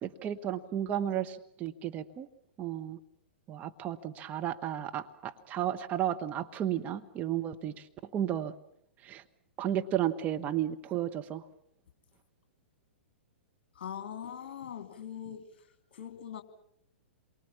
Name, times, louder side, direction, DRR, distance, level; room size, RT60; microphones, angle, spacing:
voice 1, 0.0-2.3 2.6-3.0 3.5-8.5 9.0-9.2 9.6-11.4, right 11 dB, 25° right, 1.2 m, -33 dB
voice 2, 13.8-15.5 15.9-16.4, left 9 dB, 50° left, 2.9 m, -41 dB
27.5 x 23.5 x 7.3 m
figure-of-eight pair, 110°, 6 cm